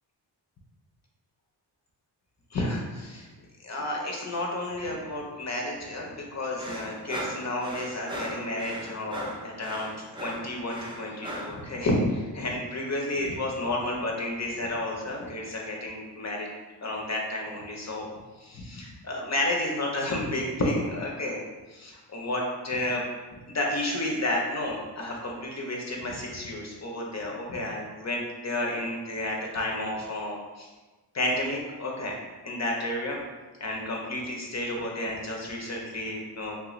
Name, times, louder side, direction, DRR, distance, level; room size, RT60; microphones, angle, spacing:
voice 1, 2.5-3.3 3.6-9.9 10.2-16.5 16.8-18.1 18.4-21.4 21.7-23.0 23.5-30.7 31.1-32.2 32.4-33.2 33.6-36.6, left 1 dB, 40° left, -1 dB, 0.6 m, -31 dB
sound 1, 6.6-11.6, equal, 10° right, 0.5 m, -38 dB
3.2 x 2.4 x 3.0 m, 1.2 s
wide cardioid pair, 95°, 42 cm